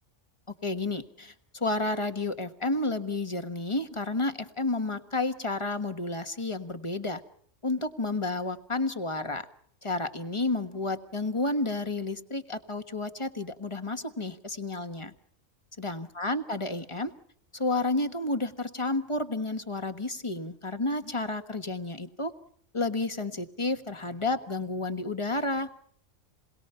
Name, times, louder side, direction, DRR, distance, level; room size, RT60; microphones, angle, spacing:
voice 1, 0.6-7.2 7.6-9.5 9.8-15.1 15.8-17.1 17.5-22.3 22.7-25.7, left 2 dB, 25° left, 9 dB, 1.4 m, -31 dB
28.5 x 21.5 x 5.7 m, 0.65 s
omnidirectional pair, 1.4 m